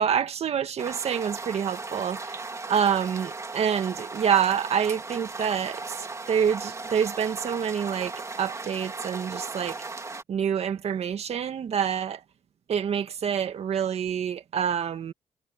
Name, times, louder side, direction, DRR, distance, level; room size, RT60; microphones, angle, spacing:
voice 1, 0.0-2.4 2.7-9.8 10.3-12.2 12.7-15.1, right 8 dB, 60° right, 2.0 m, -27 dB
sound 1, 0.8-10.2, right 3 dB, 25° right, 2.4 m, -37 dB
cardioid pair, 90°, 12 cm